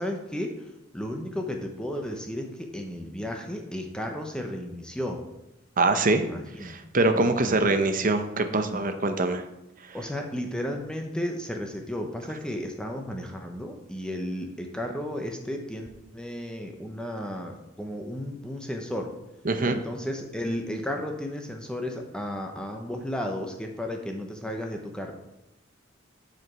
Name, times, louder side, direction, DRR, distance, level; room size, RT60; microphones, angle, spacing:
voice 1, 0.0-5.2 6.2-6.8 7.1-7.6 9.9-15.9 16.1-19.1 19.6-25.1, equal, 5° left, 2 dB, 0.8 m, -33 dB
voice 2, 5.8-6.2 6.6-9.4 19.4-19.8, right 2 dB, 45° right, 8 dB, 0.8 m, -23 dB
7.7 x 5.0 x 6.1 m, 0.91 s
head